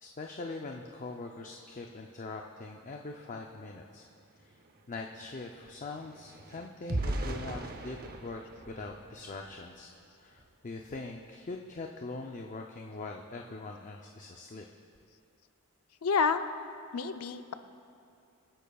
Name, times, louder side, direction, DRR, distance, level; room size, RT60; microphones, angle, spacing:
voice 1, 0.0-4.0 4.5-4.6 4.9-9.9 10.2-14.7, left 3 dB, 35° left, 2 dB, 0.5 m, -42 dB
sound 1, 3.9-4.0 4.3-9.8 10.3-10.5 10.9-11.1, right 1 dB, 45° right, 0.7 m, -39 dB
voice 2, 16.0-16.4 16.9-17.5, left 5 dB, 90° left, 9 dB, 0.6 m, -28 dB
25.0 x 10.0 x 2.3 m, 2.6 s
head